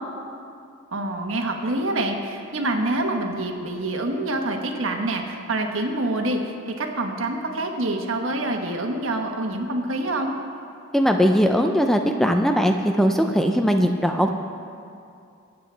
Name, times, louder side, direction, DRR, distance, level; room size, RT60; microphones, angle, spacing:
voice 1, 0.9-10.4, right 2 dB, 75° right, 2 dB, 1.3 m, -26 dB
voice 2, 10.9-14.3, equal, ahead, 4 dB, 0.4 m, -20 dB
24.5 x 8.5 x 3.4 m, 2.5 s
head